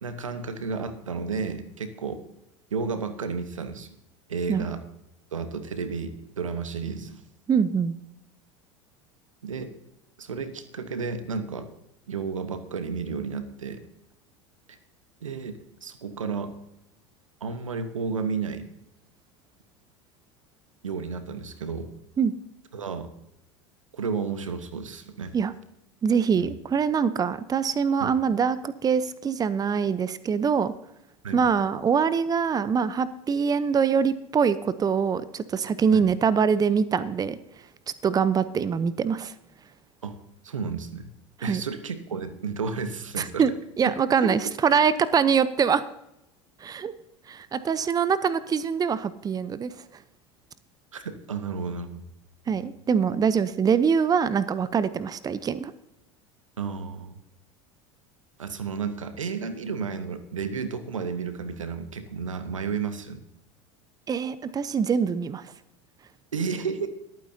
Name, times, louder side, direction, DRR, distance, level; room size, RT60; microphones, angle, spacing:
voice 1, 0.0-2.2 2.7-3.9 4.3-4.8 5.3-7.2 9.4-9.7 10.2-11.7 12.1-13.8 14.7-14.8 15.2-16.5 17.4-18.7 20.8-21.9 22.7-23.1 23.9-25.4 26.4-26.5 28.0-28.1 31.2-31.5 35.9-36.1 40.0-40.2 40.4-41.1 41.4-43.4 43.8-43.9 44.2-44.5 50.9-52.1 56.6-57.2 58.4-63.2 66.3-66.9, right 5 dB, 90° right, 11 dB, 1.1 m, -32 dB
voice 2, 7.5-8.0 22.2-22.3 25.3-25.5 26.0-30.7 31.3-37.4 38.0-39.3 41.4-41.6 43.2-45.8 46.6-46.9 47.3-49.7 52.5-55.7 64.1-65.4, right 6 dB, 25° right, 15 dB, 0.7 m, -24 dB
21.0 x 9.0 x 2.8 m, 0.85 s
hypercardioid pair, 80°, 16 cm